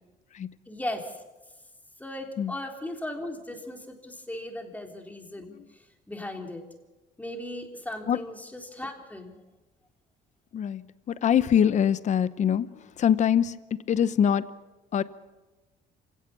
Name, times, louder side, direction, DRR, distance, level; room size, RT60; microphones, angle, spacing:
voice 1, 0.7-1.2 2.0-6.6 7.2-9.4, left 1 dB, 10° left, 3 dB, 3.5 m, -37 dB
voice 2, 10.5-14.5 14.9-15.0, left 9 dB, 45° left, 16 dB, 0.9 m, -24 dB
27.0 x 17.0 x 7.1 m, 1.1 s
cardioid pair, 110°, 17 cm